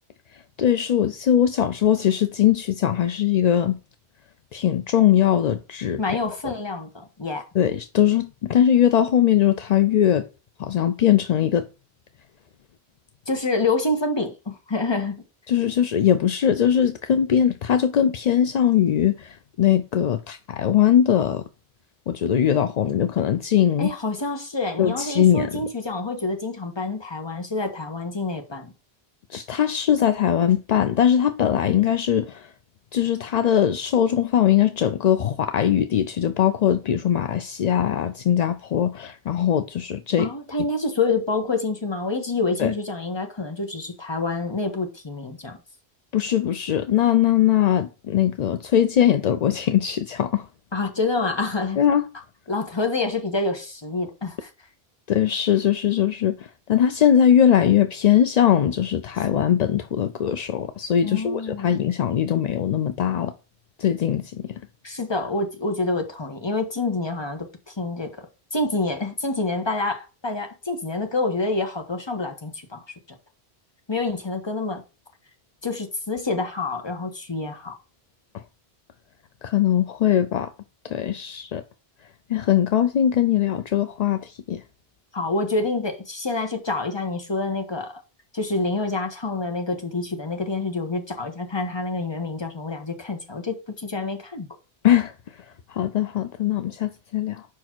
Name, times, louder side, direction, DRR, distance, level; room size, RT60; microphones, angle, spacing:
voice 1, 0.3-3.8 4.5-6.2 7.5-10.3 10.6-11.7 15.5-21.4 22.1-23.9 24.8-25.6 29.3-32.5 32.9-40.3 42.6-42.7 46.1-50.5 51.8-52.1 55.1-63.3 63.8-64.6 78.3-78.4 79.4-80.5 80.8-81.6 82.3-84.6 94.8-97.5, left 10 dB, 55° left, 0.5 m, -21 dB
voice 2, 6.0-7.4 13.3-15.2 23.8-28.7 40.2-45.6 50.7-51.8 52.5-54.5 61.0-61.7 64.8-68.3 68.5-72.8 73.1-73.2 73.9-74.8 75.6-77.7 85.1-87.9 88.3-94.5, left 3 dB, 25° left, 1.2 m, -27 dB
5.2 x 4.7 x 6.0 m
omnidirectional pair, 1.1 m